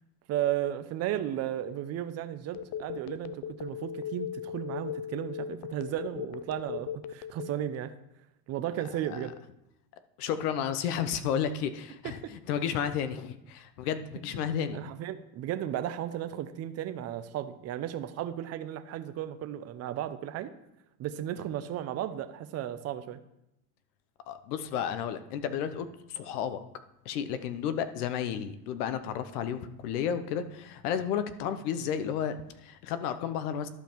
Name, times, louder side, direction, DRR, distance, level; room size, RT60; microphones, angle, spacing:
voice 1, 0.3-7.9 8.5-9.3 12.0-12.3 14.3-14.5 14.7-20.5 21.0-23.2, right 11 dB, 35° right, 11 dB, 0.6 m, -34 dB
Telephone, 2.5-7.8, left 9 dB, 40° left, 0.4 m, -37 dB
voice 2, 10.2-14.8 24.3-26.6 27.0-33.7, left 8 dB, 80° left, 11 dB, 0.9 m, -32 dB
11.5 x 5.4 x 4.5 m, 0.86 s
supercardioid pair, 125°, 45 cm